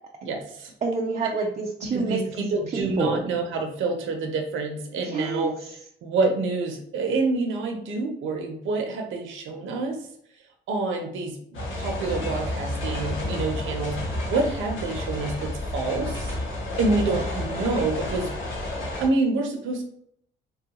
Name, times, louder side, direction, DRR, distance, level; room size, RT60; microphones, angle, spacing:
voice 1, 0.2-0.7 1.9-5.6 6.0-10.0 10.7-14.0 14.3-16.3 16.8-18.3 19.0-19.8, right 3 dB, 80° right, 3 dB, 0.7 m, -27 dB
voice 2, 0.8-3.2 5.0-5.5, right 4 dB, 35° right, 0 dB, 0.5 m, -28 dB
sound 1, 11.5-19.1, left 1 dB, 85° left, 1.1 m, -30 dB
3.5 x 2.3 x 2.9 m, 0.67 s
cardioid pair, 90°, 20 cm